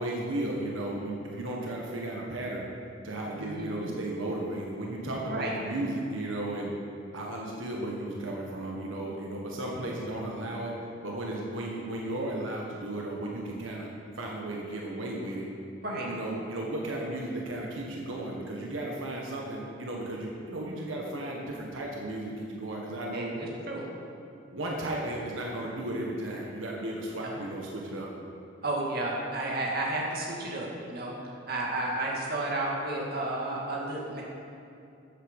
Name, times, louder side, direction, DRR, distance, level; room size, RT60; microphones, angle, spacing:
voice 1, 0.0-2.6 3.0-6.7 7.1-10.7 11.0-13.9 14.2-15.5 16.0-23.3 24.5-28.1, right 1 dB, 90° right, -2 dB, 1.6 m, -34 dB
voice 2, 3.3-3.9 5.3-5.5 15.8-16.1 23.1-23.9 27.2-27.4 28.6-34.2, right 2 dB, 50° right, -3 dB, 2.2 m, -32 dB
13.5 x 8.1 x 5.5 m, 2.6 s
head